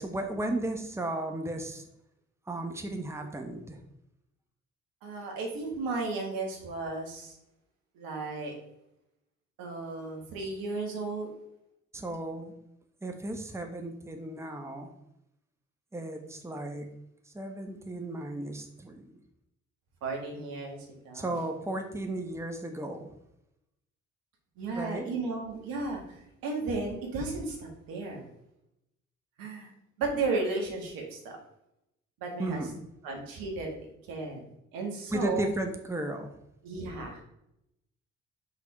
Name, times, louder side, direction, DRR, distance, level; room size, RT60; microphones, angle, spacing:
voice 1, 0.0-1.8 2.5-3.8 11.9-12.5 13.0-14.9 15.9-17.0 17.3-19.2 21.1-23.1 24.7-25.1 32.4-32.7 35.1-36.3, right 1 dB, 5° right, 4 dB, 1.1 m, -34 dB
voice 2, 5.0-7.4 8.0-8.6 9.6-11.3 20.0-21.4 24.6-28.2 29.4-29.7 30.0-31.4 32.2-32.6 33.0-33.7 34.1-34.4 34.7-35.5 36.6-37.2, right 3 dB, 70° right, 1 dB, 1.8 m, -34 dB
5.6 x 4.1 x 5.3 m, 0.81 s
hypercardioid pair, 45°, 36 cm